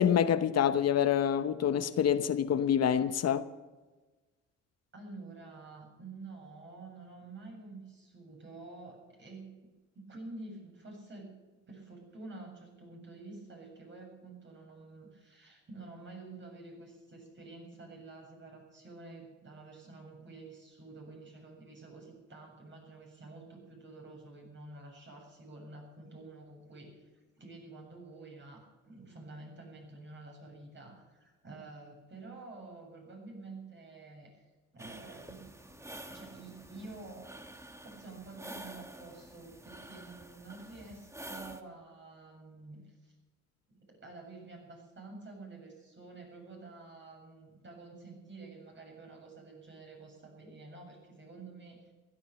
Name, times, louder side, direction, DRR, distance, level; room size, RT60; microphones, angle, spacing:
voice 1, 0.0-3.5, left 9 dB, 55° left, 0.9 m, -26 dB
voice 2, 4.9-9.5 9.9-11.3 11.7-27.1 27.4-34.4 34.7-35.5 36.1-37.4 37.8-43.1 43.7-51.9, right 3 dB, 40° right, 7.7 m, -49 dB
sound 1, 34.8-41.6, right 1 dB, 10° right, 1.4 m, -48 dB
16.0 x 13.0 x 7.0 m
cardioid pair, 90°, 30 cm